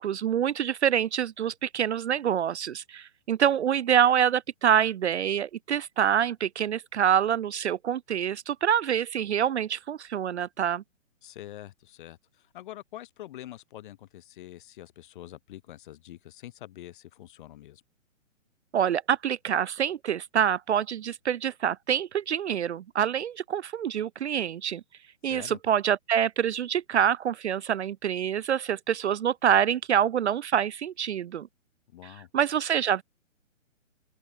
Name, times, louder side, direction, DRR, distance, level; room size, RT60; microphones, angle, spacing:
voice 1, 0.0-10.8 18.7-24.8 25.2-31.5 32.0-33.0, right 9 dB, 60° right, 0.5 m, -26 dB
voice 2, 11.2-17.8 25.2-25.6 31.9-32.3, left 13 dB, 40° left, 2.2 m, -45 dB
open air
figure-of-eight pair, 135°, 40 cm